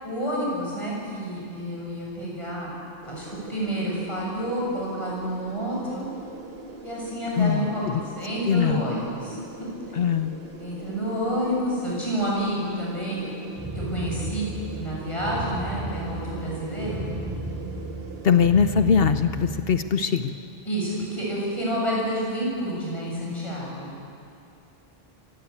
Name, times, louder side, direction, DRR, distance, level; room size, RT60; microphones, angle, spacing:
voice 1, 0.0-2.7 3.0-6.1 6.8-10.0 10.6-13.2 13.7-17.1 20.6-23.9, equal, 30° left, -5 dB, 7.7 m, -29 dB
sound 1, 3.0-18.5, right 3 dB, 70° right, 1.7 m, -42 dB
voice 2, 7.4-7.7 8.5-8.8 10.0-10.3 18.2-20.3, left 7 dB, 70° left, 9 dB, 1.0 m, -21 dB
sound 2, 13.6-19.9, right 1 dB, 20° right, 2.2 m, -34 dB
25.0 x 17.0 x 8.4 m, 2.6 s
omnidirectional pair, 1.0 m